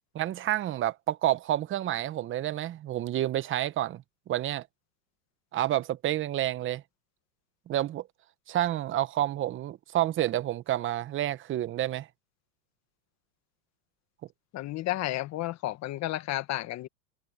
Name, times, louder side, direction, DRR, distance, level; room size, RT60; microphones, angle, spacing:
voice 1, 0.1-4.7 5.5-6.8 7.7-8.1 8.5-12.1, right 13 dB, 25° right, 1.0 m, -29 dB
voice 2, 14.5-16.9, left 15 dB, 35° left, 1.7 m, -32 dB
hypercardioid pair, 125°, 49 cm